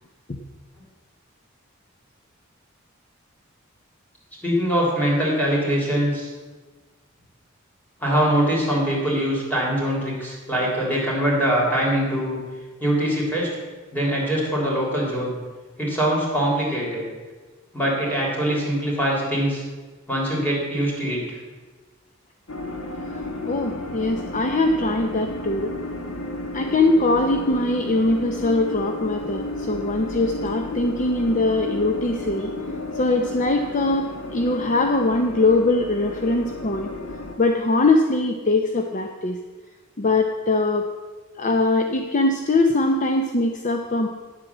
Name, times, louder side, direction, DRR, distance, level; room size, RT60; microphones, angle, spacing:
voice 1, 4.4-6.3 8.0-12.4 12.8-13.5 13.9-15.3 15.8-17.1 17.7-19.6 20.1-21.4, equal, 10° left, -4 dB, 3.8 m, -23 dB
sound 1, 22.5-37.3, left 2 dB, 80° left, 1.5 m, -33 dB
voice 2, 23.1-25.7 26.5-32.5 32.9-36.9 37.4-39.4 40.0-40.9 41.4-44.1, left 2 dB, 40° left, 4 dB, 0.7 m, -22 dB
9.9 x 8.0 x 7.2 m, 1.3 s
head